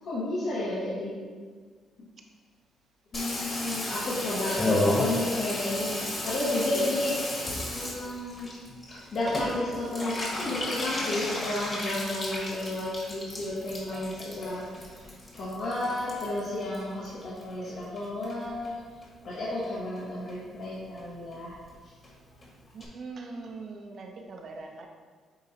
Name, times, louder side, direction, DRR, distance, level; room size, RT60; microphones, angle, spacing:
voice 1, 0.0-1.2 3.1-7.2 7.7-8.5 8.9-14.6 15.4-18.8 19.2-21.6, left 1 dB, 65° left, -9 dB, 1.5 m, -32 dB
Water tap faucet / Bathtub (filling or washing), 3.1-17.7 18.0-18.7 19.0-19.1 19.3-19.4 19.6-20.0 20.3-20.4 20.6-20.7 21.0-21.1 21.3-21.4 21.6-21.7 22.0-22.1 22.4-22.5 22.8-22.9, left 1 dB, 35° left, 1.6 m, -33 dB
voice 2, 22.7-24.9, right 3 dB, 55° right, 3 dB, 0.8 m, -41 dB
8.5 x 3.9 x 2.9 m, 1.6 s
cardioid pair, 90°, 0 cm